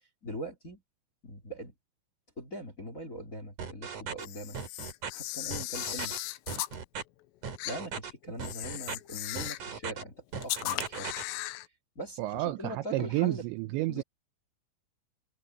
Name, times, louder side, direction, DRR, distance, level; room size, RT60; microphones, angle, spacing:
voice 1, 0.2-0.8 1.2-1.7 2.4-4.6 5.1-6.1 7.6-11.1 11.9-13.4 13.9-14.0, equal, 20° left, 2.3 m, -41 dB
sound 1, 3.6-4.3 4.5-5.1 5.5-6.2 6.5-7.0 7.4-8.1 8.4-9.0 9.4-10.0 10.3-11.2, right 6 dB, 45° right, 3.8 m, -38 dB
Camera, 4.2-6.8 7.6-7.8 8.4-9.7 10.4-11.7, left 16 dB, 80° left, 3.5 m, -37 dB
voice 2, 12.2-14.0, right 18 dB, 90° right, 2.6 m, -30 dB
omnidirectional pair, 5.9 m